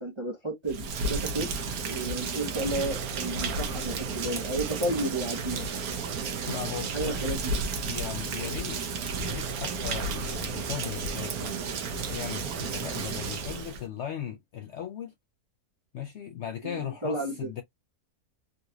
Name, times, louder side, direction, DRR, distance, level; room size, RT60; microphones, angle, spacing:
voice 1, 0.0-1.5 1.8-5.7 6.9-7.5 16.6-17.5, right 2 dB, 25° right, 0.6 m, -32 dB
Rain, 0.6-13.8, right 4 dB, 75° right, 1.3 m, -32 dB
voice 2, 6.5-7.2 7.9-8.8 9.2-11.5 12.1-15.1 15.9-17.6, left 9 dB, 65° left, 0.7 m, -37 dB
3.9 x 2.4 x 2.6 m
omnidirectional pair, 1.6 m